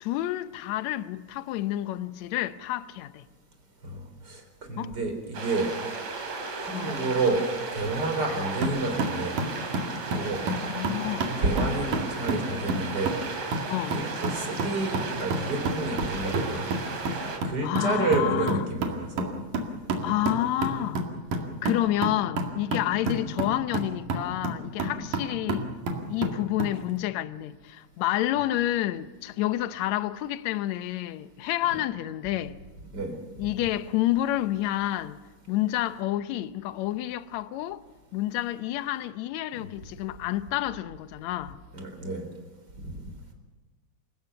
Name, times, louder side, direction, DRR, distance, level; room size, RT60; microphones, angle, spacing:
voice 1, 0.0-3.3 4.8-4.9 6.8-6.9 10.6-11.3 13.7-14.0 17.6-18.6 20.0-21.0 21.6-25.7 26.1-32.6 33.4-35.2 35.5-37.8 38.1-41.6, left 14 dB, 70° left, 1.9 m, -29 dB
voice 2, 3.8-4.4 4.7-5.7 6.6-7.4 7.7-9.4 10.1-10.4 11.4-13.1 13.9-16.7 17.4-19.3 20.0-20.2 32.9-33.5 41.7-42.3 42.8-42.9, right 2 dB, 30° right, 4.3 m, -29 dB
sound 1, 5.3-17.4, right 4 dB, 55° right, 4.2 m, -35 dB
sound 2, 8.6-26.8, right 2 dB, 75° right, 3.8 m, -31 dB
27.5 x 17.5 x 6.9 m
omnidirectional pair, 3.7 m